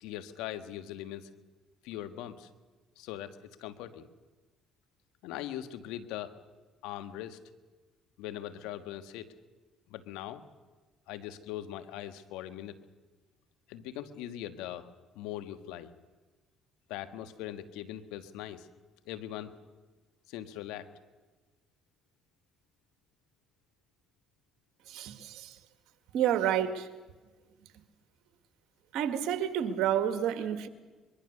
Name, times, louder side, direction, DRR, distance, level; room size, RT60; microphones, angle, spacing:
voice 1, 0.0-1.3 1.8-2.5 3.0-4.1 5.2-6.3 6.8-7.4 8.2-9.3 9.9-10.4 11.1-12.8 13.7-14.9 15.1-15.9 16.9-18.7 19.1-19.5 20.3-20.9, left 12 dB, 85° left, 11 dB, 1.5 m, -41 dB
voice 2, 24.9-25.6 26.1-26.9 28.9-30.7, right 10 dB, 75° right, 9 dB, 2.0 m, -29 dB
23.5 x 22.5 x 6.7 m, 1.3 s
supercardioid pair, 70°, 0 cm